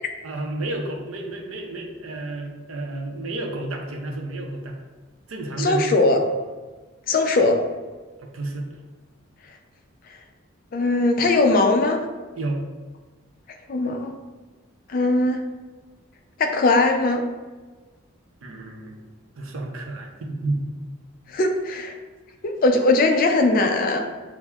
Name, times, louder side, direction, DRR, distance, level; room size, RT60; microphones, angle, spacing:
voice 1, 0.2-4.8 5.3-6.0 8.2-8.7 12.4-12.6 18.4-19.0 19.4-20.8, right 2 dB, 75° right, 1 dB, 0.6 m, -31 dB
voice 2, 5.6-6.2 7.1-7.6 10.7-12.0 13.7-14.1 14.9-15.4 16.4-17.2 21.3-21.9 22.4-24.1, left 2 dB, 40° left, 4 dB, 0.3 m, -20 dB
5.7 x 2.0 x 2.3 m, 1.3 s
head